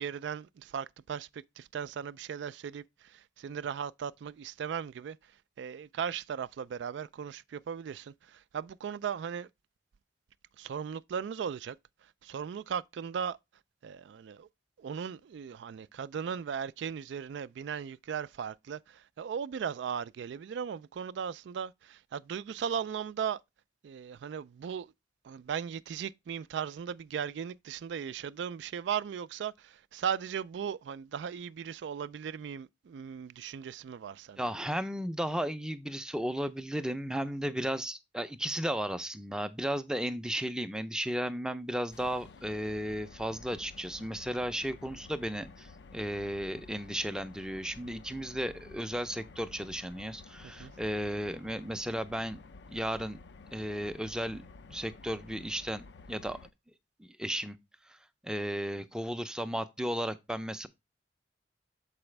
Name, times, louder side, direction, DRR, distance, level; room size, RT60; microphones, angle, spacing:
voice 1, 0.0-5.2 5.6-9.5 10.6-11.8 12.2-13.4 13.8-14.5 14.8-23.4 23.8-24.9 25.2-34.4 50.4-50.7, right 7 dB, 70° right, 0.3 m, -37 dB
voice 2, 34.4-52.4 52.7-53.2 53.5-54.4 54.7-56.4 57.0-57.6 57.9-58.0 58.2-60.7, equal, 5° right, 0.5 m, -34 dB
sound 1, 41.9-56.5, left 3 dB, 65° left, 0.5 m, -52 dB
7.0 x 4.9 x 3.2 m
head